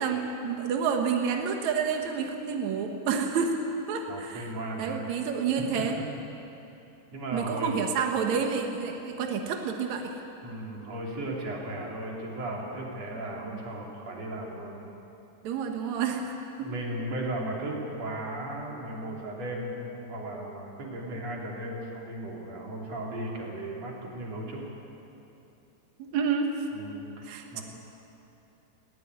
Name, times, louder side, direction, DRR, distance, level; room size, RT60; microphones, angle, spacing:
voice 1, 0.0-3.5 3.9-4.4 4.8-6.0 7.3-10.1 13.5-13.6 15.4-16.7 26.0-26.7 27.2-27.6, right 6 dB, 80° right, 3 dB, 1.6 m, -29 dB
voice 2, 4.1-5.1 5.7-6.0 7.1-7.7 10.4-14.8 16.6-24.6 26.7-27.6, right 1 dB, 40° right, -2 dB, 3.7 m, -36 dB
19.5 x 16.5 x 9.5 m, 2.9 s
omnidirectional pair, 5.3 m